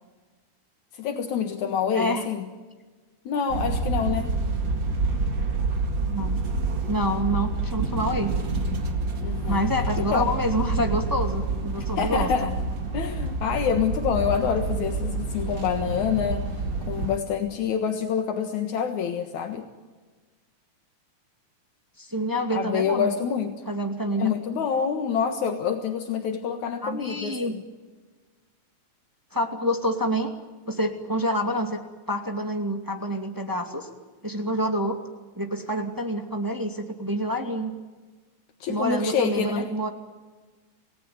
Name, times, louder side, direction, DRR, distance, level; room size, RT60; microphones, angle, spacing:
voice 1, 0.9-2.5 3.3-4.4 9.2-9.6 10.0-10.2 11.8-12.6 12.9-16.5 16.9-19.7 22.5-23.6 24.2-27.6 38.6-39.7, left 7 dB, 75° left, 5 dB, 2.9 m, -27 dB
voice 2, 1.9-2.2 6.1-6.4 6.9-8.3 9.5-12.5 22.0-23.1 23.7-24.3 26.8-27.5 29.3-30.3 30.7-31.8 32.1-33.9 34.2-35.0 35.3-37.7 38.7-39.9, equal, 5° right, 4 dB, 2.0 m, -27 dB
sound 1, 3.5-17.2, right 3 dB, 40° right, 2.5 m, -28 dB
28.5 x 18.0 x 9.7 m, 1.3 s
omnidirectional pair, 3.4 m